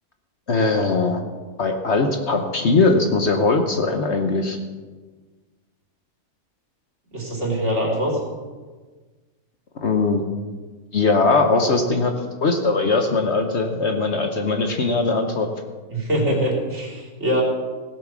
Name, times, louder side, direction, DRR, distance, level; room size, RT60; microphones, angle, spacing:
voice 1, 0.5-1.2 1.6-4.6 9.8-10.2 10.9-12.1 12.4-15.5, left 3 dB, 50° left, 4 dB, 1.2 m, -20 dB
voice 2, 7.1-8.2 15.9-17.4, equal, 50° right, -1 dB, 3.4 m, -23 dB
17.5 x 7.6 x 6.2 m, 1.4 s
omnidirectional pair, 1.6 m